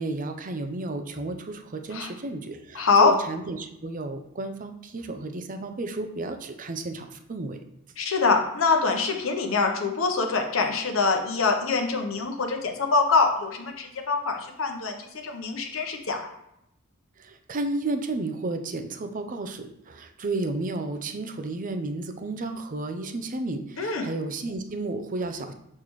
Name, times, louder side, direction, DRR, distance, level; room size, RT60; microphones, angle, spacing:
voice 1, 0.0-7.6 17.2-25.5, right 2 dB, 40° right, 7 dB, 0.6 m, -32 dB
voice 2, 2.7-3.1 8.0-15.0 15.2-16.2 23.8-24.1, left 4 dB, 70° left, 4 dB, 0.9 m, -24 dB
6.6 x 5.5 x 3.1 m, 0.81 s
head